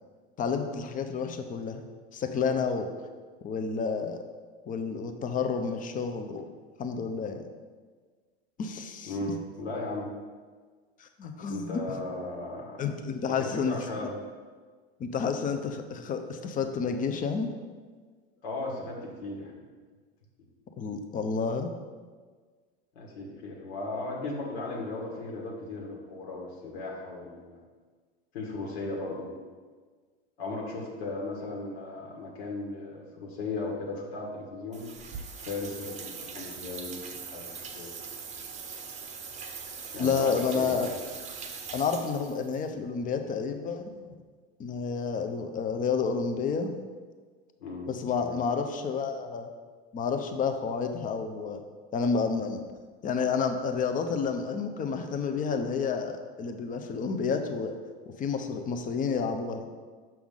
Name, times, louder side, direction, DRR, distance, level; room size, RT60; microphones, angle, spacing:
voice 1, 0.4-1.8 2.1-2.9 3.4-4.2 4.7-6.5 6.8-7.4 8.6-9.2 11.0-12.0 12.8-14.1 15.0-17.5 20.8-21.7 40.0-40.9 41.7-44.1 44.6-46.7 47.9-49.5 49.9-51.6 51.9-52.6 53.0-57.8 58.2-59.7, left 5 dB, 25° left, 6 dB, 0.6 m, -30 dB
voice 2, 9.1-10.1 11.5-12.8 13.3-14.2 18.4-19.6 23.0-27.6 28.3-29.3 30.4-34.9 35.3-37.9 39.9-40.9 47.6-47.9 48.2-48.4, left 2 dB, 70° left, -1 dB, 1.8 m, -36 dB
sound 1, 34.7-42.6, right 5 dB, 20° right, 0.8 m, -41 dB
6.2 x 5.7 x 3.8 m, 1.5 s
hypercardioid pair, 105°, 32 cm